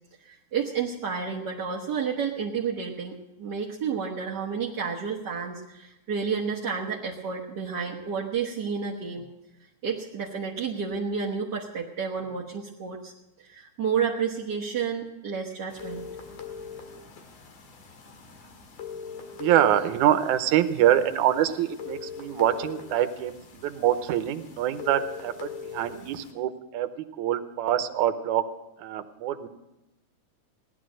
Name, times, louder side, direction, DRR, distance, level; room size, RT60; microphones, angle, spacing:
voice 1, 0.2-9.3 9.8-13.1 13.4-16.1, right 6 dB, 50° right, -4 dB, 1.2 m, -31 dB
sound 1, 15.7-26.3, left 6 dB, 75° left, 3.3 m, -42 dB
voice 2, 19.4-28.5 28.8-29.5, right 11 dB, 80° right, 10 dB, 2.2 m, -25 dB
18.0 x 11.5 x 6.3 m, 0.95 s
omnidirectional pair, 3.6 m